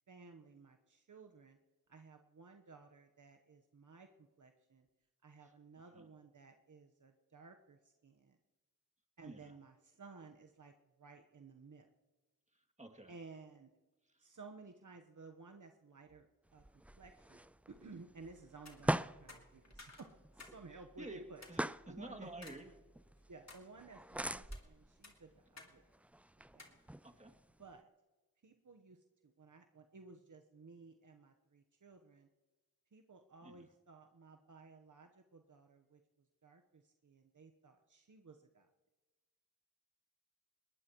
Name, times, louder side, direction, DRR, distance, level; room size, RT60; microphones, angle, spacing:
voice 1, 0.1-1.6 1.9-4.9 5.2-8.4 9.2-11.9 13.1-13.7 14.2-16.3 16.5-16.6 17.0-20.1 20.3-21.4 21.9-22.3 23.3-25.8 26.5-26.8 27.6-27.9 28.4-32.3 32.9-36.0 36.4-38.7, right 4 dB, 60° right, 4 dB, 1.1 m, -56 dB
voice 2, 9.2-9.5 12.5-13.1 14.1-14.2 21.0-21.2 21.5-22.7 25.6-25.7 27.0-27.3 33.4-33.7, right 1 dB, 20° right, 1 dB, 2.5 m, -51 dB
sound 1, 16.5-27.8, right 1 dB, 5° right, 0.4 m, -44 dB
sound 2, 18.5-18.8 19.3-20.6 20.9-21.0 21.4-21.6 22.4-22.6 23.1-23.6 24.3-24.7 25.0-25.7 26.0-26.1 26.6-26.8, left 3 dB, 50° left, 3.0 m, -56 dB
21.0 x 19.5 x 3.1 m, 1.2 s
cardioid pair, 45°, 35 cm